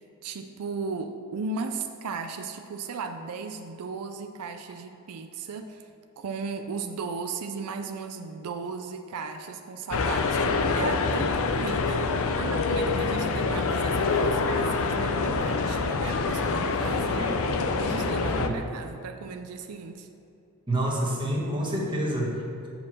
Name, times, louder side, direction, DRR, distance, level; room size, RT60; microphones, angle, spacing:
voice 1, 0.2-5.9 6.2-17.4 17.8-20.1, right 4 dB, 90° right, 7 dB, 0.4 m, -36 dB
sound 1, 9.9-18.5, left 4 dB, 65° left, 0.5 m, -26 dB
voice 2, 20.7-22.7, right 1 dB, 20° right, -3 dB, 1.4 m, -28 dB
7.4 x 4.6 x 6.1 m, 2.7 s
head